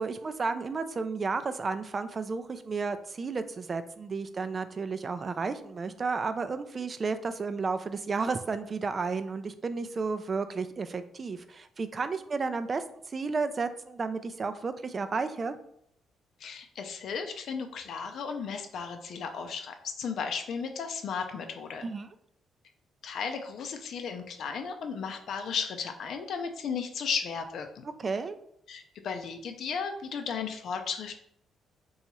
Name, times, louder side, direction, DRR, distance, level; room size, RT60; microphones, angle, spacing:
voice 1, 0.0-12.8 13.1-15.6 21.8-22.1 28.0-28.4, right 4 dB, 35° right, 10 dB, 0.3 m, -32 dB
voice 2, 16.4-21.9 23.0-27.8 28.7-31.1, left 6 dB, 70° left, 5 dB, 0.5 m, -35 dB
2.9 x 2.3 x 4.2 m, 0.70 s
cardioid pair, 90°, 0 cm